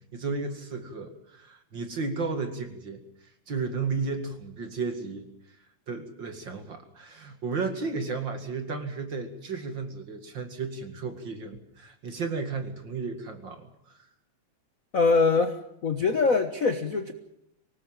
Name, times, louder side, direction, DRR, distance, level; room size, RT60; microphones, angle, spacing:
voice 1, 0.1-3.0 3.5-5.3 5.9-14.1, right 4 dB, 40° right, 6 dB, 2.7 m, -33 dB
voice 2, 14.9-17.1, left 4 dB, 45° left, 8 dB, 1.1 m, -23 dB
25.0 x 19.0 x 7.4 m, 0.78 s
omnidirectional pair, 3.3 m